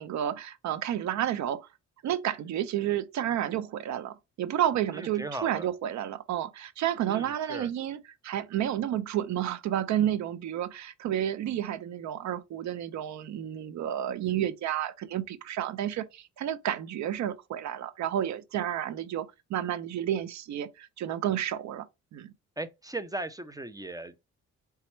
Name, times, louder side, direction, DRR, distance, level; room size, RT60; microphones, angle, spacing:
voice 1, 0.0-1.7 2.0-21.9 22.1-22.3, right 11 dB, 70° right, 0.6 m, -31 dB
voice 2, 4.9-5.7 7.1-7.7 22.6-24.2, right 2 dB, 10° right, 0.4 m, -37 dB
4.2 x 3.5 x 3.0 m
cardioid pair, 90°, 30 cm